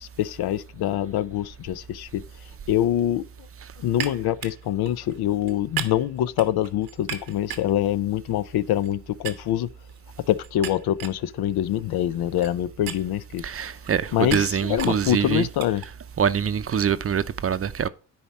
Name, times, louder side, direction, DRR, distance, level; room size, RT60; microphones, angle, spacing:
voice 1, 0.0-2.2 2.7-3.3 3.8-9.7 10.3-13.4 14.1-15.8, left 12 dB, 80° left, 0.6 m, -25 dB
sound 1, 3.9-9.0 9.2-16.7, right 9 dB, 90° right, 1.1 m, -38 dB
voice 2, 13.4-15.5 16.2-17.9, right 7 dB, 40° right, 0.6 m, -24 dB
10.5 x 4.3 x 4.2 m
cardioid pair, 80°, 37 cm